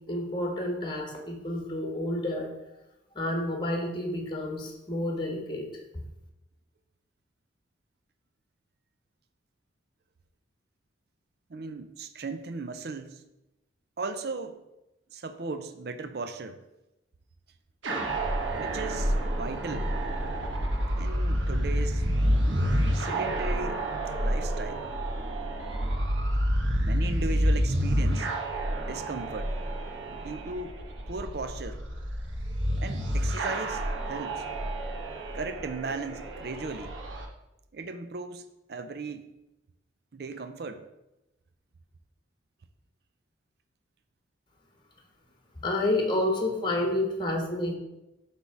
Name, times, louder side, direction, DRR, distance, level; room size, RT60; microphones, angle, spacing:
voice 1, 0.1-2.5 3.1-5.7 45.6-47.7, left 1 dB, 25° left, 1 dB, 1.3 m, -29 dB
voice 2, 11.5-13.2 14.0-14.6 15.1-16.6 18.5-19.9 21.0-22.0 22.9-23.9 24.2-24.8 26.8-28.3 28.9-29.5 30.1-30.8 31.1-31.8 32.8-34.4 35.3-36.9 37.7-38.4 38.7-39.3 40.1-40.9, right 3 dB, 55° right, 9 dB, 0.5 m, -37 dB
sound 1, 17.8-37.3, equal, 90° right, 1.1 m, -29 dB
8.1 x 3.5 x 6.0 m, 0.93 s
head